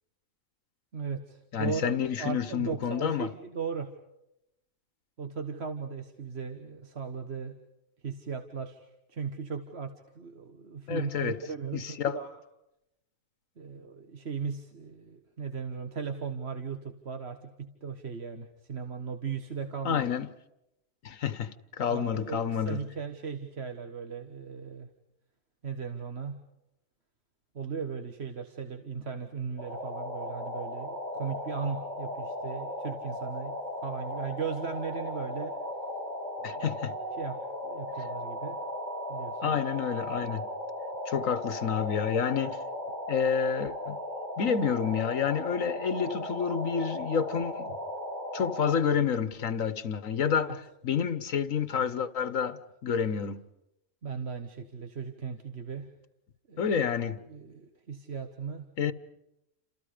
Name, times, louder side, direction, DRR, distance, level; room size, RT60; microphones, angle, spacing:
voice 1, 0.9-3.9 5.2-7.6 8.0-12.4 13.6-20.0 21.9-24.9 25.6-26.4 27.5-35.5 36.4-36.6 37.2-38.6 39.1-39.6 50.3-50.6 54.0-55.9 56.5-56.6 57.0-58.7, right 6 dB, 55° right, 1.6 m, -37 dB
voice 2, 1.5-3.3 10.9-11.4 11.7-12.2 19.8-20.3 21.0-22.8 36.4-36.9 39.4-40.5 41.1-42.6 43.1-44.0 44.4-47.7 48.3-53.4 56.6-57.2 58.8-58.9, left 7 dB, 85° left, 1.6 m, -29 dB
sound 1, 29.6-48.7, left 1 dB, 35° left, 7.2 m, -37 dB
30.0 x 27.5 x 5.1 m
omnidirectional pair, 1.3 m